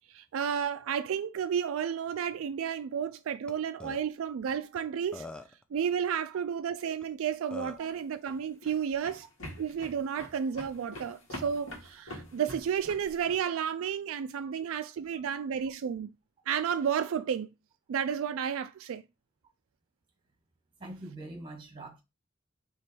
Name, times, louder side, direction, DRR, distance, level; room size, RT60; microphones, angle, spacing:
voice 1, 0.1-5.3 5.7-9.3 9.6-16.1 16.5-17.5 17.9-19.0, right 8 dB, 80° right, 0.3 m, -32 dB
Burping eructation, 3.5-3.6 3.8-4.0 4.8-4.9 5.1-5.6 7.0-7.1 7.5-7.9, left 2 dB, 5° left, 0.4 m, -42 dB
sound 1, 7.7-13.4, left 1 dB, 75° left, 1.7 m, -45 dB
voice 2, 20.8-22.0, right 2 dB, 25° right, 1.3 m, -44 dB
3.4 x 3.0 x 4.3 m
head